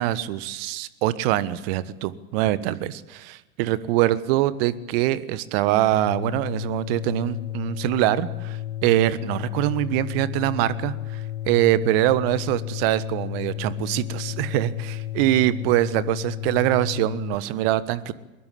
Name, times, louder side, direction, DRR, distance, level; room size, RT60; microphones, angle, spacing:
voice 1, 0.0-10.9 11.5-18.1, right 15 dB, 45° right, 17 dB, 1.4 m, -23 dB
sound 1, 5.9-17.3, left 12 dB, 65° left, 1.9 m, -32 dB
23.0 x 20.5 x 8.5 m, 1.1 s
figure-of-eight pair, 85°, 40 cm